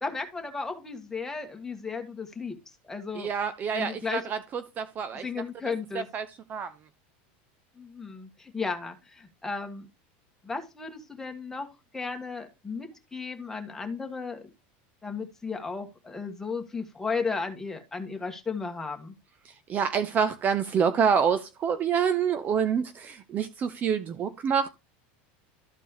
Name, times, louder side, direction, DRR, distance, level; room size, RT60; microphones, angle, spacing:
voice 1, 0.0-2.6 2.8-3.3 3.7-4.3 5.1-6.1 7.8-9.9 10.4-11.7 11.9-14.4 15.0-19.2, left 4 dB, 10° left, 1.5 m, -34 dB
voice 2, 3.1-5.2 5.9-6.7 19.7-24.7, right 7 dB, 30° right, 0.6 m, -27 dB
13.0 x 4.5 x 3.0 m
supercardioid pair, 140°, 6 cm